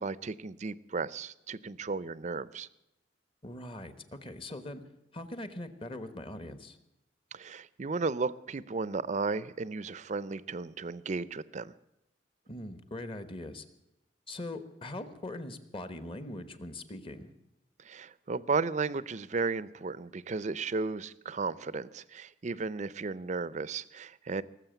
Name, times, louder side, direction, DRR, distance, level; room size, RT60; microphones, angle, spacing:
voice 1, 0.0-2.7 7.3-11.7 17.8-24.4, right 4 dB, 40° right, 18 dB, 0.5 m, -34 dB
voice 2, 3.4-4.8 5.1-6.8 12.5-13.6 14.3-17.3, left 1 dB, 30° left, 11 dB, 1.1 m, -41 dB
19.0 x 7.6 x 9.0 m, 0.90 s
head